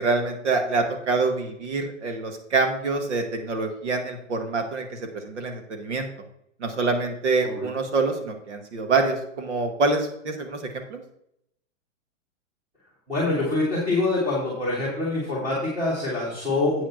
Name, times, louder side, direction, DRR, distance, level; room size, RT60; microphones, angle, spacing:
voice 1, 0.0-6.1 6.6-11.0, right 3 dB, 60° right, 5 dB, 1.9 m, -26 dB
voice 2, 13.1-16.8, left 2 dB, 10° right, -7 dB, 1.9 m, -25 dB
8.5 x 5.2 x 5.9 m, 0.75 s
hypercardioid pair, 170°, 39 cm